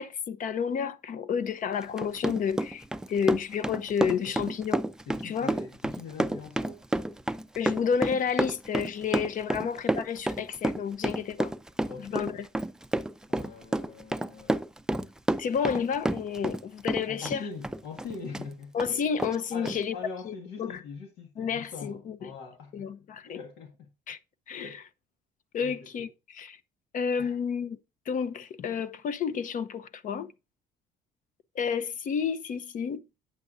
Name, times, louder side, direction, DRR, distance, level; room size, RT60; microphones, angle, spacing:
voice 1, 0.0-4.8 5.2-5.6 7.6-11.5 12.0-12.5 15.4-17.5 18.7-19.9 20.3-20.8 21.4-22.3 22.7-23.4 24.1-24.2 24.5-24.7 25.5-26.6 26.9-27.8 28.1-30.3 31.5-33.0, left 7 dB, 50° left, 0.8 m, -31 dB
Run, 1.8-16.6 16.9-18.5 18.8-18.9 19.2-19.4 19.7-19.8, right 1 dB, 5° right, 0.4 m, -30 dB
voice 2, 4.1-4.4 5.1-6.8 9.5-9.6 11.9-12.2 13.3-14.6 17.1-18.7 19.5-22.9 23.2-23.9 24.5-24.8 25.6-26.1 27.2-27.4, left 4 dB, 90° left, 1.7 m, -42 dB
9.5 x 7.6 x 2.6 m
cardioid pair, 110°, 17 cm